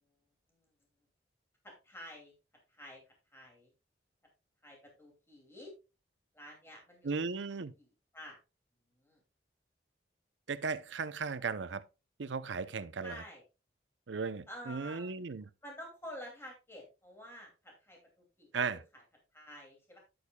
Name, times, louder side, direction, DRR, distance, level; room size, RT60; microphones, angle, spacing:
voice 1, 1.6-2.3 2.7-3.0 3.3-3.7 4.6-5.7 6.3-7.1 7.8-7.9 8.1-8.4 9.0-9.2 13.0-13.4 14.5-15.1 15.6-18.6 19.3-20.0, equal, 15° left, 2.5 m, -49 dB
voice 2, 7.0-7.7 10.5-11.8 12.2-13.2 14.1-15.5 18.5-18.8, right 4 dB, 80° right, 0.6 m, -36 dB
10.5 x 8.4 x 2.3 m
head